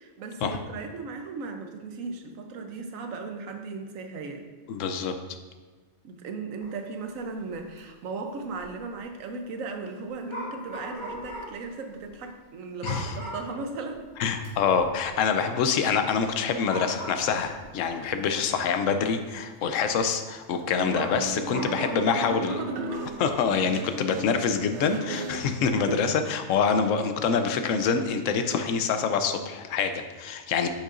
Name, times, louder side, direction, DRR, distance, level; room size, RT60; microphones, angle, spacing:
voice 1, 0.0-4.5 6.0-14.0 18.3-18.4 21.3-23.1 25.9-26.0, right 4 dB, 85° right, 5 dB, 1.2 m, -37 dB
voice 2, 4.7-5.1 12.8-13.2 14.2-22.6 23.2-30.7, left 6 dB, 80° left, 8 dB, 1.0 m, -26 dB
sound 1, 6.6-6.9 7.2-7.3 7.5-7.8 8.6-8.8 10.3-11.7 12.0-12.1 12.8-13.6 14.0-14.1 14.4-15.0 16.3-16.4 16.6-17.6 18.4-18.5 20.9-23.5, equal, 15° left, 1.9 m, -38 dB
Guitar, 20.6-25.9, right 3 dB, 65° right, 0.9 m, -36 dB
8.5 x 6.5 x 2.5 m, 1.4 s
omnidirectional pair, 1.3 m